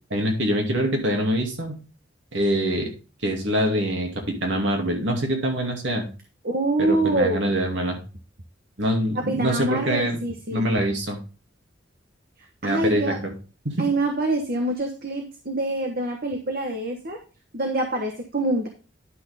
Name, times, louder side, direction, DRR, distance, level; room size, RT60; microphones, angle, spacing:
voice 1, 0.1-1.8 2.3-2.9 3.2-6.1 6.8-8.0 8.8-10.2 10.5-11.2 12.6-13.3 13.6-13.9, equal, 65° right, 2 dB, 2.5 m, -24 dB
voice 2, 6.4-7.5 9.1-10.7 12.6-13.2 13.8-17.2 17.5-18.7, right 2 dB, 50° right, 3 dB, 1.2 m, -25 dB
11.0 x 6.2 x 3.5 m, 0.34 s
head